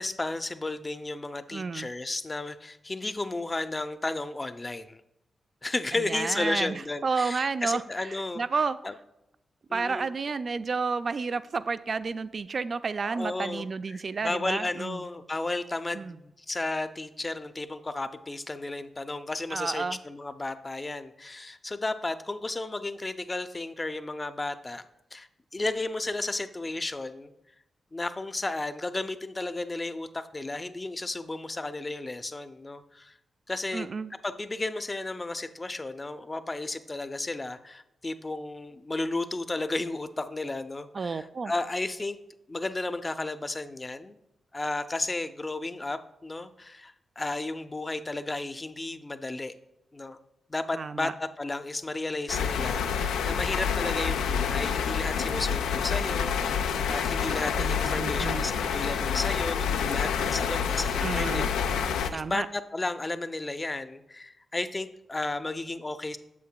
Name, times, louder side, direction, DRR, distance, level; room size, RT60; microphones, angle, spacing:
voice 1, 0.0-5.0 5.6-8.4 8.8-8.9 9.7-10.1 13.0-24.8 25.1-27.3 27.9-33.2 33.5-33.9 34.2-42.2 42.5-44.2 44.5-49.5 49.9-50.2 50.5-61.5 62.1-66.2, left 2 dB, 30° left, 11 dB, 0.5 m, -33 dB
voice 2, 1.5-1.9 5.9-7.8 8.1-8.8 9.7-15.0 15.9-16.2 19.5-20.0 33.7-34.1 40.9-41.5 50.7-51.1 57.6-58.5 61.0-61.5 62.1-62.5, right 4 dB, 55° right, 13 dB, 0.3 m, -31 dB
sound 1, 52.3-62.1, left 7 dB, 85° left, 0.3 m, -28 dB
8.3 x 6.9 x 2.2 m, 0.89 s
supercardioid pair, 40°, 0 cm